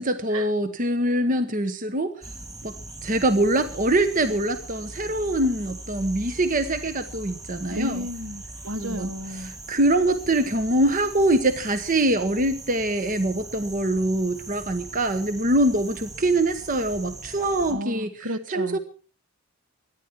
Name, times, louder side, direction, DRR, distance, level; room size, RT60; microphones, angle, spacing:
voice 1, 0.0-2.1 2.6-2.7 3.0-8.1 8.8-9.1 9.4-18.1 18.5-18.8, right 1 dB, 35° right, 1.0 m, -24 dB
sound 1, 2.2-17.7, right 2 dB, 15° right, 2.6 m, -40 dB
voice 2, 7.7-9.5 17.7-18.8, equal, 65° right, 1.5 m, -32 dB
24.0 x 10.0 x 4.5 m
head